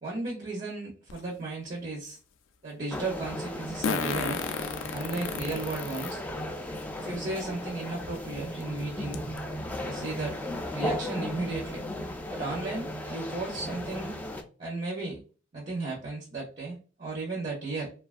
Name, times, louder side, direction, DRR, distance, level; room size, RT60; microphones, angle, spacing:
voice 1, 0.0-2.2 2.6-4.4 4.9-6.2 7.0-9.2 9.8-10.4 10.7-11.8 12.3-14.1 14.6-15.2 15.5-17.9, right 3 dB, 40° right, -2 dB, 0.6 m, -35 dB
Fart, 1.1-1.2 3.8-6.1 6.8-6.9 8.1-8.2 8.6-8.7 9.1-9.4, left 6 dB, 90° left, 0.4 m, -32 dB
sound 1, 2.9-14.4, left 1 dB, 10° left, 0.3 m, -36 dB
2.7 x 2.3 x 2.4 m, 0.37 s
head